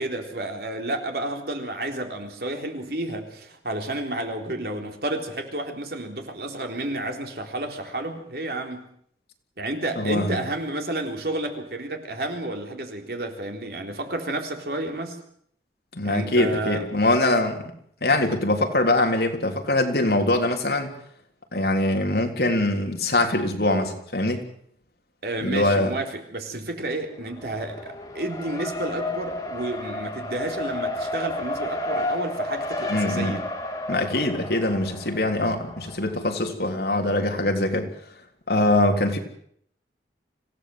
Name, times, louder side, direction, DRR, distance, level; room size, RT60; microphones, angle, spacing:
voice 1, 0.0-8.9 9.6-15.2 16.0-16.8 25.2-33.4, right 2 dB, 60° right, 3 dB, 3.9 m, -31 dB
voice 2, 10.0-10.4 15.9-17.6 18.0-20.9 21.5-24.5 25.4-25.9 32.9-33.4 33.9-37.9 38.5-39.2, left 1 dB, 60° left, 3 dB, 3.5 m, -23 dB
Race car auto racing, 27.2-36.3, left 1 dB, 20° left, 2.8 m, -32 dB
25.5 x 17.0 x 7.8 m, 0.68 s
head